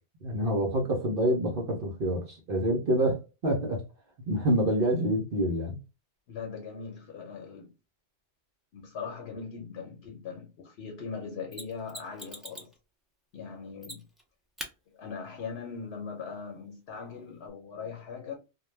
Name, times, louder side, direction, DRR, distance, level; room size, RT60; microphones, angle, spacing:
voice 1, 0.2-3.8 4.3-5.8, right 1 dB, 60° right, 0.8 m, -27 dB
voice 2, 6.3-7.7 8.7-12.7 13.3-14.0 14.9-18.3, left 5 dB, 75° left, 0.9 m, -40 dB
Mechanisms, 11.5-12.8 13.8-14.2 14.6-14.7 17.5-17.6, equal, ahead, 0.3 m, -42 dB
2.3 x 2.2 x 3.1 m
omnidirectional pair, 1.1 m